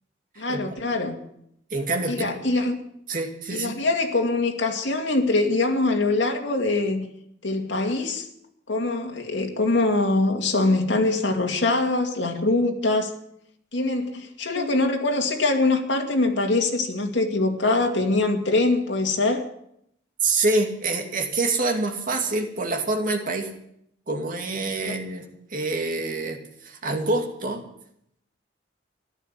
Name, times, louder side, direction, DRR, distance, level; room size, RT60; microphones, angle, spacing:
voice 1, 0.4-1.2 2.1-2.8 3.5-7.1 7.4-8.3 8.7-13.1 13.7-19.4 24.8-24.9, left 2 dB, 75° left, 2 dB, 2.3 m, -23 dB
voice 2, 1.7-2.5 3.1-3.7 14.5-14.7 20.2-23.5 24.1-27.6, right 3 dB, 45° right, 3 dB, 2.4 m, -26 dB
14.5 x 12.0 x 7.6 m, 0.74 s
head